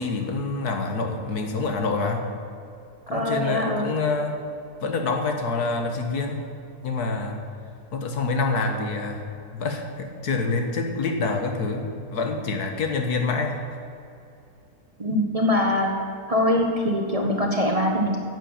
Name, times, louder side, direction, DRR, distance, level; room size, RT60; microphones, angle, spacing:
voice 1, 0.0-2.3 3.1-4.4 4.8-6.4 6.8-7.4 7.9-9.2 9.5-13.6, left 3 dB, 75° left, 4 dB, 1.8 m, -26 dB
voice 2, 3.1-3.9 15.0-15.9 16.3-18.2, left 1 dB, 25° right, 1 dB, 1.2 m, -23 dB
10.0 x 7.9 x 8.8 m, 2.6 s
omnidirectional pair, 1.7 m